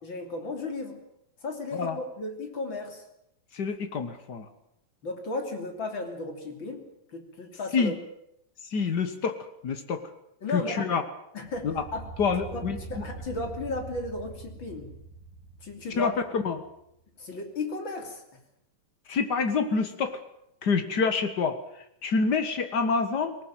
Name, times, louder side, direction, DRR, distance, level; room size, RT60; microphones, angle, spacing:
voice 1, 0.0-1.0 1.4-3.0 5.0-6.9 7.1-7.9 10.4-10.9 11.3-12.1 12.5-12.6 12.9-14.9 15.6-16.1 17.2-18.2, left 3 dB, 35° left, 4 dB, 3.4 m, -34 dB
voice 2, 3.5-4.5 7.7-7.9 8.7-9.4 9.6-10.1 10.5-11.0 11.6-11.8 12.2-13.0 16.0-16.6 19.1-20.2 20.6-23.4, left 5 dB, 80° left, 8 dB, 0.9 m, -27 dB
sound 1, 11.4-16.7, right 3 dB, 65° right, 2.9 m, -43 dB
20.0 x 19.0 x 9.0 m, 0.77 s
omnidirectional pair, 4.1 m